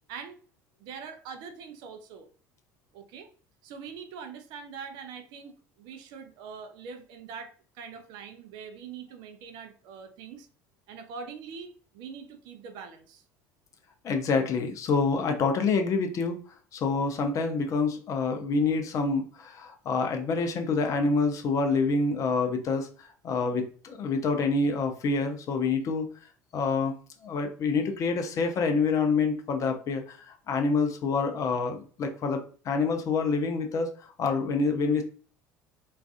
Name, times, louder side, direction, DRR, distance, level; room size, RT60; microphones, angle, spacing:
voice 1, 0.8-2.3 2.9-3.3 3.6-10.5 10.9-13.2, right 6 dB, 55° right, 8 dB, 0.4 m, -43 dB
voice 2, 14.0-16.4 16.7-26.1 26.5-26.9 27.2-35.0, left 4 dB, 40° left, 5 dB, 0.5 m, -27 dB
2.4 x 2.3 x 2.3 m, 0.40 s
figure-of-eight pair, 65°, 9 cm